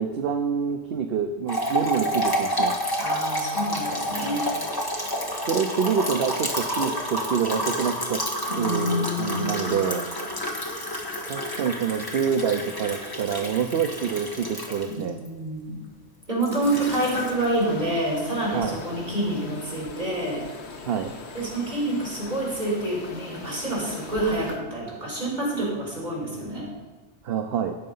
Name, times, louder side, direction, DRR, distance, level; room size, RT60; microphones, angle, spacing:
voice 1, 0.0-2.8 5.5-8.2 8.6-10.1 11.3-15.2 18.5-18.8 20.8-21.2 27.2-27.7, right 7 dB, 60° right, 6 dB, 0.9 m, -26 dB
sound 1, 1.5-15.3 16.2-17.6, equal, 20° left, 1.6 m, -29 dB
voice 2, 3.0-4.5 8.5-9.8 14.9-15.8 16.3-20.4 21.3-26.7, right 1 dB, 40° right, -5 dB, 4.9 m, -28 dB
sound 2, 16.6-24.6, left 4 dB, 70° left, 1.3 m, -41 dB
16.5 x 6.6 x 5.5 m, 1.2 s
omnidirectional pair, 1.2 m